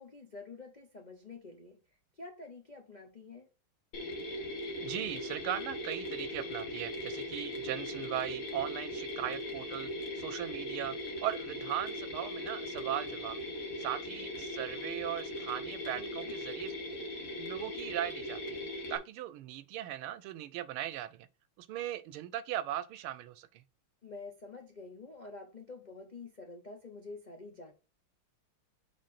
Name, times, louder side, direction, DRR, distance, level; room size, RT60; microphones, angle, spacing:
voice 1, 0.0-1.8 2.1-3.5 15.9-16.4 24.0-27.7, left 3 dB, 75° left, 0.4 m, -48 dB
Mechanisms, 3.9-19.0, left 1 dB, 45° left, 1.4 m, -39 dB
voice 2, 4.8-9.9 10.1-13.4 13.8-16.7 17.4-18.6 18.9-21.3 21.6-23.6, right 13 dB, 90° right, 1.5 m, -38 dB
6.5 x 4.0 x 4.1 m
omnidirectional pair, 2.3 m